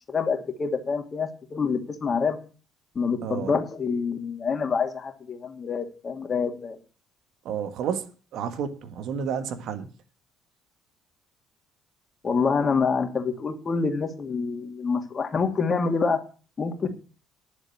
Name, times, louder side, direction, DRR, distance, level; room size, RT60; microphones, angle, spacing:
voice 1, 0.1-2.4 2.9-6.8 12.2-16.2 16.6-16.9, left 5 dB, 40° left, 2.4 m, -26 dB
voice 2, 3.2-3.5 7.4-8.0 8.3-9.9, right 7 dB, 65° right, 1.5 m, -30 dB
11.0 x 7.2 x 7.3 m
hypercardioid pair, 50°, 0 cm